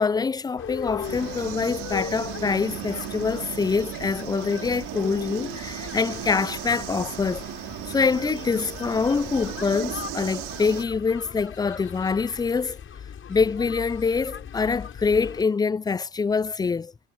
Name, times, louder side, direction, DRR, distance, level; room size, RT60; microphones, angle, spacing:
voice 1, 0.0-7.5 7.9-12.8 13.3-16.9, left 5 dB, 15° left, 0.4 m, -25 dB
sound 1, 0.6-15.4, left 8 dB, 45° left, 7.3 m, -39 dB
sound 2, 1.0-10.8, right 20 dB, 80° right, 2.9 m, -36 dB
supercardioid pair, 90°, 30 cm